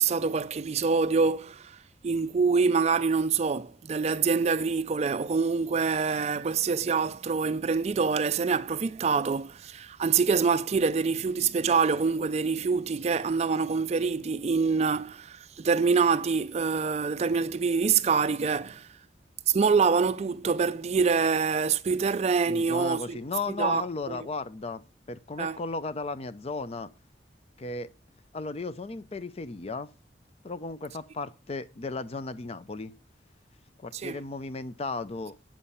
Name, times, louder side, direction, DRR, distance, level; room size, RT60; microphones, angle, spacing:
voice 1, 0.0-18.9 19.5-23.2 23.6-24.3 25.4-25.6 33.9-34.2, right 5 dB, 40° right, 0.4 m, -25 dB
voice 2, 22.5-24.8 25.1-26.9 27.6-27.9 28.3-29.9 30.4-32.9 33.8-35.4, left 3 dB, 35° left, 0.5 m, -35 dB
7.4 x 7.1 x 5.5 m
head